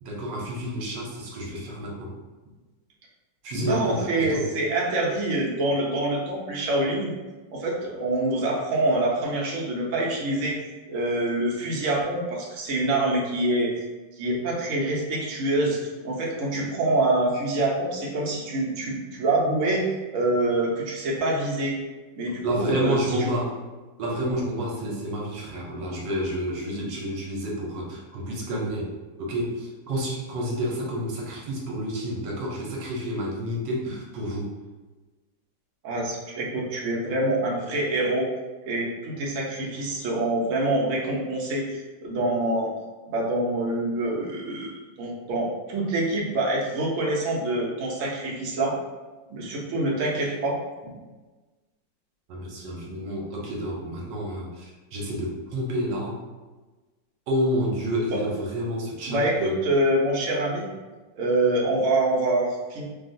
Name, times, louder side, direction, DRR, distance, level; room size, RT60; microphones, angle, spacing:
voice 1, 0.0-2.1 3.4-4.5 22.4-23.6 24.0-28.9 29.2-34.5 52.3-56.2 57.3-59.5, equal, 80° right, -2 dB, 1.3 m, -29 dB
voice 2, 3.5-7.1 7.5-10.6 10.9-13.8 14.2-15.8 16.0-21.8 22.1-23.3 35.8-38.3 38.7-42.7 43.1-48.8 49.3-50.6 58.1-58.2 59.1-60.7 61.1-62.8, right 2 dB, 60° right, -3 dB, 0.8 m, -25 dB
3.4 x 2.4 x 2.5 m, 1.2 s
omnidirectional pair, 2.0 m